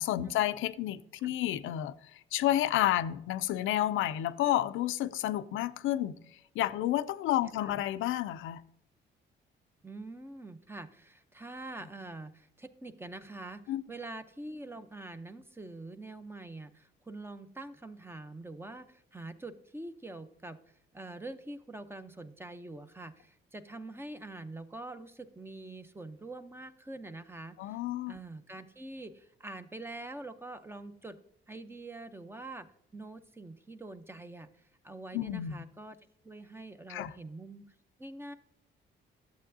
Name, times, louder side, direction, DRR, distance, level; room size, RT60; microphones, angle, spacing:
voice 1, 0.0-6.1 6.6-8.6 13.7-13.8 27.6-28.2 35.1-35.5 36.9-37.1, left 13 dB, 85° left, 0.5 m, -30 dB
voice 2, 9.8-20.6 20.9-27.8 28.1-31.2 31.5-32.7 32.9-36.0 36.2-37.7 38.0-38.3, right 2 dB, 10° right, 0.7 m, -45 dB
11.5 x 7.6 x 2.7 m
cardioid pair, 90°, 20 cm